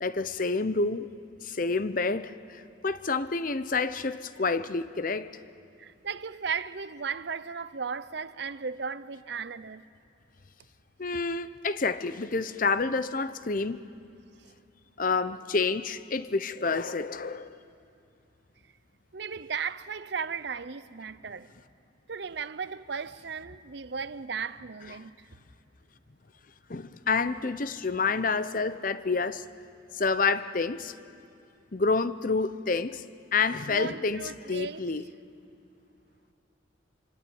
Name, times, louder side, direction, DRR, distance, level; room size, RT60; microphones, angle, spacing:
voice 1, 0.0-1.1 1.4-5.3 11.0-13.8 15.0-17.6 26.7-29.5 29.9-30.9 31.7-33.0 33.3-35.0, left 4 dB, 45° left, 0.7 m, -28 dB
voice 2, 5.8-9.8 19.1-21.5 22.1-25.3 33.7-34.8, right 5 dB, 60° right, 0.6 m, -36 dB
25.5 x 25.5 x 8.7 m
head